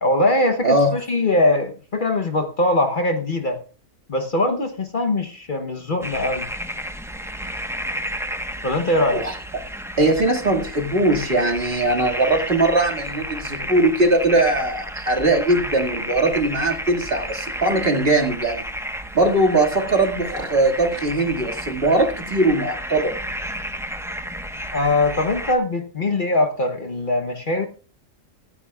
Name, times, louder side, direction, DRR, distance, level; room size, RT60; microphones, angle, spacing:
voice 1, 0.0-3.6 4.1-6.5 8.6-9.2 24.7-27.7, left 2 dB, 40° left, 6 dB, 1.1 m, -21 dB
voice 2, 0.6-0.9 9.1-9.3 10.0-18.6 19.1-23.1, right 2 dB, 45° right, 2 dB, 2.3 m, -20 dB
sound 1, 6.0-25.5, equal, ahead, 1.0 m, -32 dB
24.5 x 9.7 x 2.3 m, 0.37 s
omnidirectional pair, 1.3 m